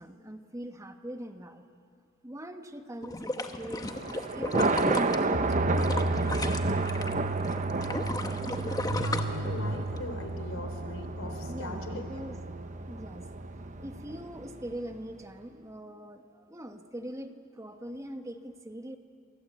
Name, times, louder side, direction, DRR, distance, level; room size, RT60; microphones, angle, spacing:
voice 1, 0.0-1.6 2.2-3.9 4.3-5.9 11.5-12.4 12.9-13.3 13.8-19.0, equal, 15° right, 7 dB, 1.3 m, -42 dB
sound 1, 3.0-7.1 7.4-10.0 10.4-10.5, left 2 dB, 20° left, 1.2 m, -34 dB
Thunder, 3.7-15.0, right 3 dB, 40° right, 1.0 m, -32 dB
sound 2, 5.3-14.2, right 2 dB, 70° right, 1.0 m, -34 dB
voice 2, 9.0-12.2, left 2 dB, 90° left, 7 dB, 3.5 m, -41 dB
28.5 x 24.5 x 8.3 m, 2.4 s
head